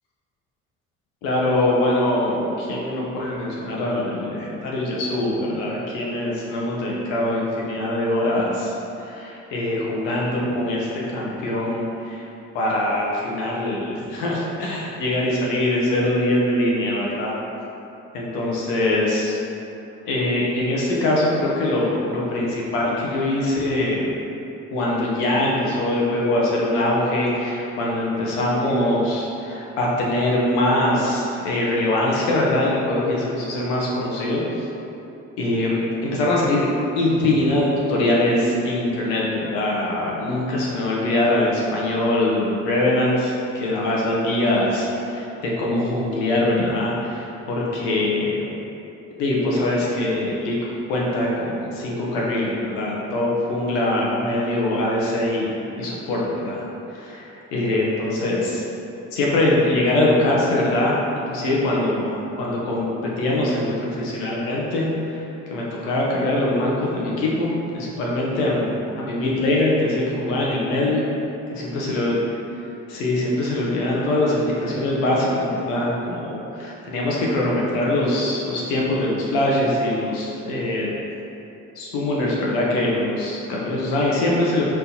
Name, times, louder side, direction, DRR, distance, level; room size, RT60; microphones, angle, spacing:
voice 1, 1.2-12.2 12.5-17.3 18.1-19.4 20.1-24.1 24.7-34.7 35.4-36.7 37.0-48.5 49.2-50.6 50.9-56.6 56.9-58.6 59.1-64.9 65.1-65.2 65.5-71.1 71.7-72.2 72.9-80.9 81.8-84.6, left 1 dB, 75° left, -4 dB, 0.9 m, -23 dB
4.3 x 3.9 x 2.8 m, 2.9 s
hypercardioid pair, 50°, 36 cm